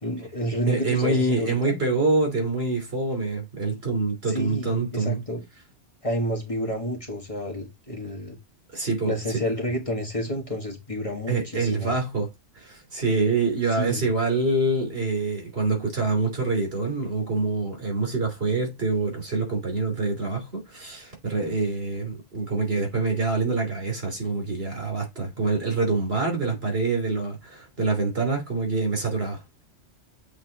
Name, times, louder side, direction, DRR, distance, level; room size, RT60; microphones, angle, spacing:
voice 1, 0.0-1.8 4.2-5.4 6.0-8.4 9.1-11.9 13.7-14.1, equal, 30° left, 1.7 m, -30 dB
voice 2, 0.7-5.2 8.7-9.1 11.3-12.3 12.6-29.4, right 3 dB, 60° right, 3.3 m, -26 dB
7.8 x 4.2 x 4.0 m
omnidirectional pair, 1.2 m